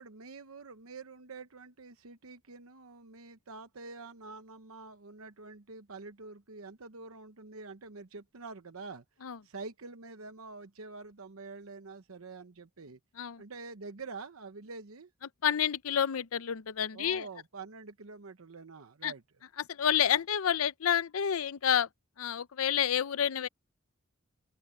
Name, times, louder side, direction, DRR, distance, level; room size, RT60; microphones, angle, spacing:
voice 1, 0.0-9.0 9.4-13.0 13.4-15.1 16.9-19.2 19.8-20.0, right 3 dB, 90° right, 1.0 m, -46 dB
voice 2, 15.4-17.3 19.0-19.1 19.7-21.9 22.2-23.5, left 9 dB, 85° left, 0.6 m, -29 dB
open air
head